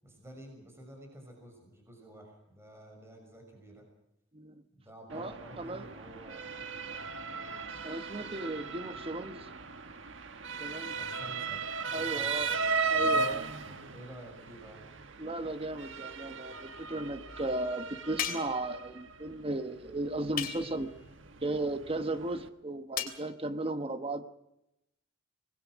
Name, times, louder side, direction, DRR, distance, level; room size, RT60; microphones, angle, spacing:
voice 1, 0.0-3.9 4.7-6.5 6.8-7.6 10.9-11.6 11.9-12.5 13.6-14.8, right 1 dB, 15° right, 2 dB, 6.2 m, -51 dB
voice 2, 5.1-5.9 7.8-9.5 10.6-10.9 11.9-12.5 12.9-13.5 15.2-20.9 21.4-24.2, right 2 dB, 30° right, 9 dB, 1.3 m, -35 dB
Motor vehicle (road) / Siren, 5.1-22.5, right 4 dB, 70° right, 1.6 m, -37 dB
sound 1, 18.2-18.7 20.4-20.9 23.0-23.2, left 8 dB, 50° left, 3.3 m, -35 dB
25.5 x 20.5 x 6.4 m, 0.84 s
head